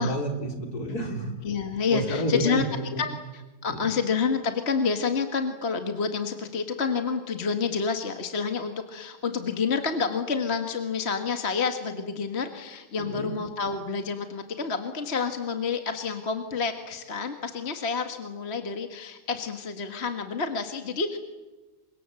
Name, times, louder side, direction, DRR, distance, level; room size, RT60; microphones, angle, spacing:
voice 1, 0.0-1.3 1.9-3.1 3.7-3.8 13.0-13.4, right 1 dB, 55° left, 4 dB, 3.9 m, -30 dB
voice 2, 1.4-2.7 3.0-21.2, left 5 dB, 35° left, 6 dB, 1.8 m, -29 dB
28.5 x 25.0 x 7.7 m, 1.2 s
omnidirectional pair, 1.9 m